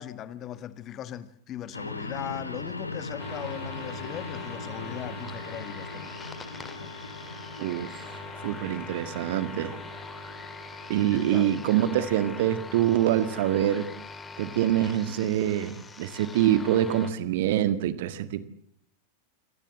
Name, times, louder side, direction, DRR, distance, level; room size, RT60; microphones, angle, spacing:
voice 1, 0.0-6.1 6.7-6.9 9.6-9.8 11.1-11.7, left 11 dB, 30° left, 1.4 m, -39 dB
sound 1, 1.7-11.4, left 2 dB, 80° left, 2.4 m, -40 dB
sound 2, 3.2-17.1, left 3 dB, 15° left, 2.2 m, -42 dB
voice 2, 7.6-8.2 8.4-9.8 10.9-13.9 14.4-18.4, right 12 dB, 55° right, 1.8 m, -25 dB
26.5 x 18.5 x 7.6 m
figure-of-eight pair, 90°, 0 cm